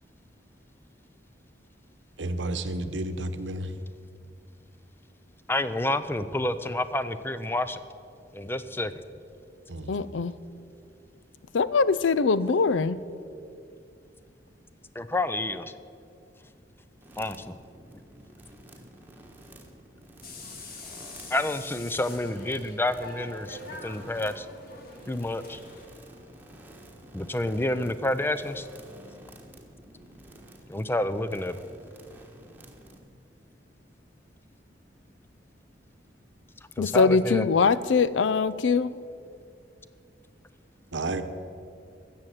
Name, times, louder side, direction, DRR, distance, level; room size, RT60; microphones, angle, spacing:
voice 1, 2.2-3.7 9.7-9.9 40.9-41.2, right 2 dB, 80° right, 10 dB, 1.0 m, -31 dB
voice 2, 5.5-7.8 8.3-8.9 15.0-15.7 17.2-17.5 21.3-24.5 25.1-25.6 27.1-28.7 30.7-31.6 36.8-37.5, left 1 dB, 10° left, 12 dB, 0.5 m, -29 dB
voice 3, 9.9-10.3 11.5-13.0 36.8-38.9, left 4 dB, 85° left, 17 dB, 0.5 m, -22 dB
sound 1, 17.0-33.0, right 1 dB, 10° right, 1.3 m, -50 dB
sound 2, 20.2-25.9, left 2 dB, 55° left, 2.0 m, -44 dB
14.5 x 7.3 x 9.2 m, 2.4 s
head